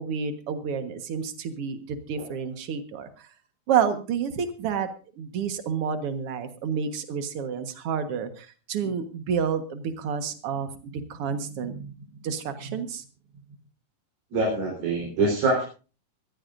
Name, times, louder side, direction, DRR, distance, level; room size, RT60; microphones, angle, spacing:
voice 1, 0.0-3.3 3.7-4.9 5.2-13.0, right 7 dB, 55° right, 8 dB, 1.9 m, -29 dB
voice 2, 14.3-15.6, right 3 dB, 85° right, -2 dB, 5.9 m, -24 dB
23.5 x 15.0 x 2.6 m, 0.34 s
omnidirectional pair, 4.1 m